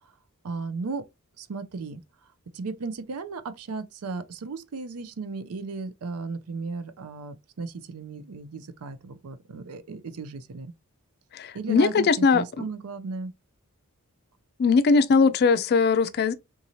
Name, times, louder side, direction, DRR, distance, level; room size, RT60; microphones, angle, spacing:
voice 1, 0.4-1.1 1.4-2.0 2.5-10.7 11.5-13.3, right 4 dB, 85° right, 0.5 m, -35 dB
voice 2, 11.3-12.6 14.6-16.3, left 4 dB, 45° left, 0.4 m, -20 dB
3.8 x 2.7 x 2.9 m
head